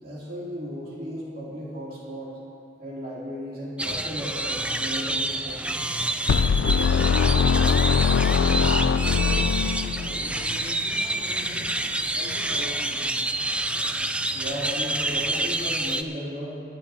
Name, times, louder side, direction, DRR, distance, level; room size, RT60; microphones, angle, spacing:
voice 1, 0.0-2.4 2.8-5.8 14.4-16.6, equal, 50° right, -7 dB, 2.9 m, -35 dB
sound 1, 3.8-16.0, right 2 dB, 5° right, 0.3 m, -28 dB
sound 2, 6.3-10.3, left 6 dB, 85° left, 0.3 m, -21 dB
voice 2, 7.2-11.8 12.1-13.2, left 1 dB, 90° right, -5 dB, 2.8 m, -41 dB
24.5 x 11.0 x 2.8 m, 2.4 s
head